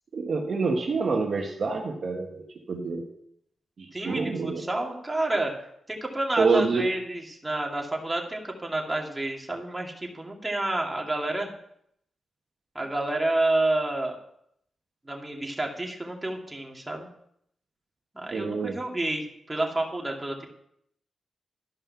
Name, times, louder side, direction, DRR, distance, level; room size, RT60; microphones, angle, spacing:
voice 1, 0.1-3.1 3.8-4.6 6.4-6.8 18.3-18.7, right 4 dB, 60° right, 1 dB, 1.4 m, -27 dB
voice 2, 3.9-5.5 5.9-11.5 12.7-14.2 15.1-17.1 18.1-20.5, right 2 dB, 20° right, 0 dB, 2.4 m, -29 dB
12.5 x 5.6 x 5.8 m, 0.72 s
cardioid pair, 60°, 0 cm